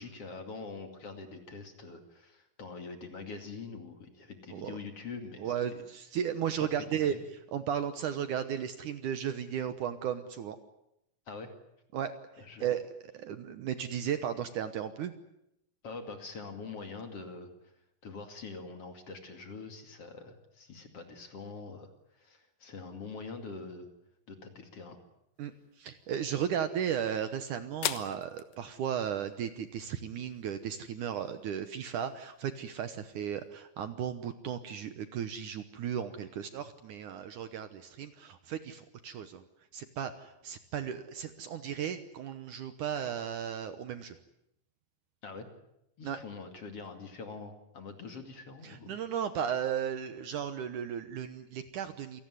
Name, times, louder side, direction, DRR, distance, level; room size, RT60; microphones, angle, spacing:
voice 1, 0.0-5.8 6.7-7.2 11.3-11.5 12.4-12.6 15.8-17.7 18.0-23.9 24.3-25.0 45.2-45.5 46.0-49.0, left 4 dB, 45° left, 6 dB, 3.0 m, -44 dB
voice 2, 5.4-7.1 7.5-10.6 11.9-15.1 25.4-39.4 39.7-44.2 46.0-46.2 48.6-52.2, right 9 dB, 65° right, 10 dB, 2.2 m, -35 dB
sound 1, 25.3-33.5, left 12 dB, 80° left, 3.0 m, -45 dB
27.5 x 18.0 x 9.6 m, 0.82 s
omnidirectional pair, 4.4 m